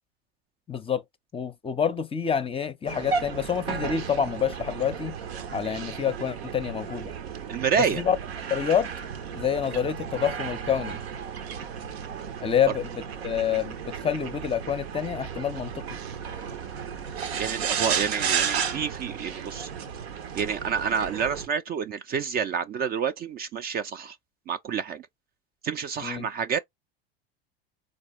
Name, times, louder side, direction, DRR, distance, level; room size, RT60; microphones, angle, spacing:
voice 1, 0.7-1.0 1.3-5.2 5.5-7.1 8.0-8.2 8.5-8.9 9.3-11.0 12.4-13.7 14.0-15.8 26.0-26.3, left 8 dB, 20° left, 0.5 m, -27 dB
sound 1, 2.9-21.5, right 7 dB, 80° right, 0.8 m, -33 dB
voice 2, 7.5-8.0 17.4-19.7 20.3-24.2 24.5-25.1 25.6-26.6, right 7 dB, 30° right, 0.4 m, -28 dB
4.0 x 2.5 x 2.9 m
hypercardioid pair, 85°, 30 cm